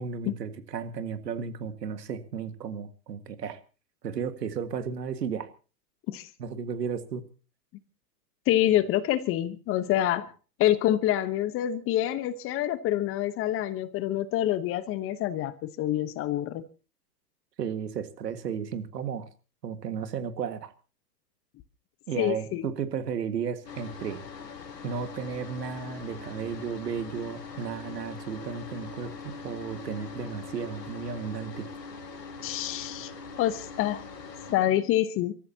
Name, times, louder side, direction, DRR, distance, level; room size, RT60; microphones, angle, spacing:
voice 1, 0.0-3.6 4.0-5.5 6.4-7.2 17.6-19.3 19.6-20.7 22.1-24.3 24.8-31.7, right 7 dB, 80° right, 2.0 m, -34 dB
voice 2, 8.5-10.3 10.6-16.6 22.2-22.7 32.4-33.1 33.4-34.0 34.5-35.3, left 13 dB, 25° left, 1.1 m, -26 dB
sound 1, 23.6-34.6, left 4 dB, 90° left, 2.5 m, -42 dB
29.5 x 14.0 x 2.9 m
hypercardioid pair, 120°, 49 cm